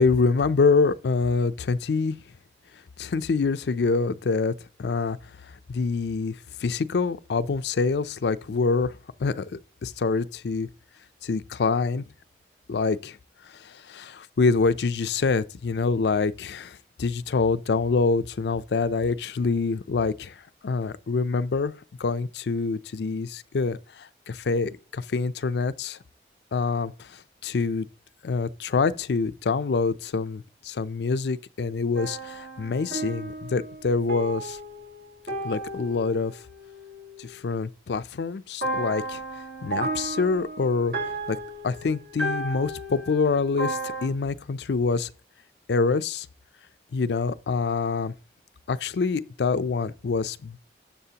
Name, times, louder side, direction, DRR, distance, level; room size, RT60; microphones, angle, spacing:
voice 1, 0.0-2.2 3.0-4.5 4.8-5.2 5.7-6.4 6.6-9.5 9.8-10.7 11.2-12.0 12.7-13.2 13.6-20.3 20.6-21.7 22.0-26.0 26.5-27.9 28.2-34.6 35.4-36.3 37.2-39.2 39.6-41.4 41.6-45.1 45.7-46.3 46.9-48.1 48.7-50.6, left 4 dB, 75° left, 0.4 m, -26 dB
sound 1, 32.0-37.3 38.6-44.1, right 2 dB, 65° right, 2.1 m, -34 dB
12.5 x 7.3 x 2.8 m
head